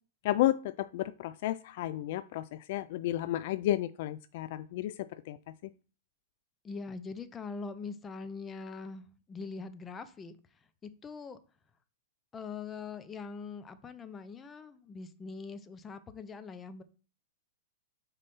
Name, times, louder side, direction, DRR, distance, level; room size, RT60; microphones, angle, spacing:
voice 1, 0.2-5.4, left 14 dB, 55° left, 0.3 m, -32 dB
voice 2, 6.6-10.4 10.8-11.4 12.3-16.8, left 4 dB, 15° left, 0.7 m, -42 dB
5.4 x 4.0 x 5.5 m
hypercardioid pair, 140°, 0 cm